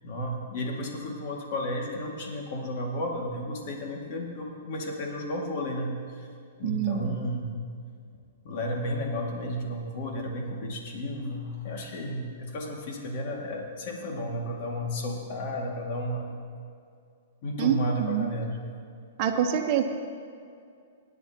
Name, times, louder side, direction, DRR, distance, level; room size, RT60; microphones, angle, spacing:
voice 1, 0.0-5.9 6.6-7.5 8.4-16.3 17.4-18.6, equal, 50° left, 0 dB, 2.2 m, -33 dB
voice 2, 6.6-7.3 17.6-18.3 19.2-19.8, right 8 dB, 40° right, 2 dB, 1.1 m, -26 dB
19.5 x 10.0 x 3.0 m, 2.3 s
hypercardioid pair, 150°, 0 cm